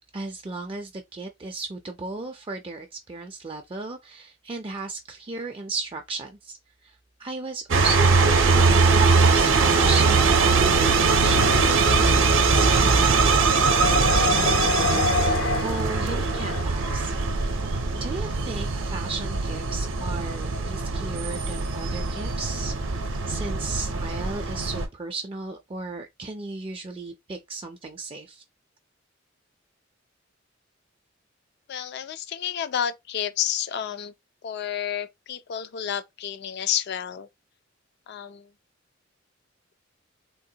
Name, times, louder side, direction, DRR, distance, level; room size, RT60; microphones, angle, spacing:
voice 1, 0.1-6.6 6.8-11.7 11.9-12.3 12.5-13.4 13.7-17.1 17.9-28.4, right 3 dB, 25° right, 0.4 m, -35 dB
sound 1, 7.7-24.9, right 4 dB, 70° right, 0.6 m, -21 dB
sound 2, 8.4-10.2 10.6-16.6, left 4 dB, 80° left, 0.7 m, -30 dB
voice 2, 31.7-34.1 34.4-37.3 38.1-38.5, left 9 dB, 55° left, 0.3 m, -30 dB
3.7 x 2.1 x 2.7 m
head